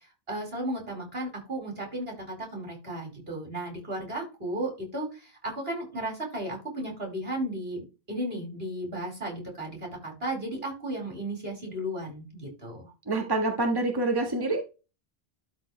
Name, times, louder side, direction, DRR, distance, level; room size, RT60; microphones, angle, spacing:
voice 1, 0.3-12.9, right 1 dB, 75° right, 0 dB, 4.9 m, -34 dB
voice 2, 13.1-14.6, right 2 dB, 25° right, 3 dB, 1.5 m, -26 dB
12.5 x 4.5 x 3.2 m, 0.29 s
omnidirectional pair, 1.0 m